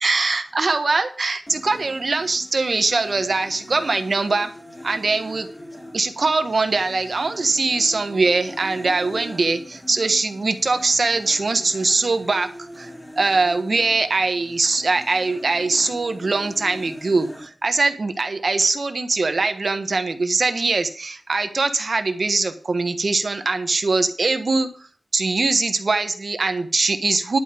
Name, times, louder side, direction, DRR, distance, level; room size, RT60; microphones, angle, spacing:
voice 1, 0.0-4.5 4.8-5.5 5.9-12.5 12.8-12.9 13.2-24.7 25.1-27.4, right 3 dB, 60° right, 8 dB, 1.3 m, -22 dB
sound 1, 1.5-17.5, left 1 dB, 10° left, 3.0 m, -41 dB
11.0 x 5.2 x 8.2 m, 0.43 s
wide cardioid pair, 75°, 0 cm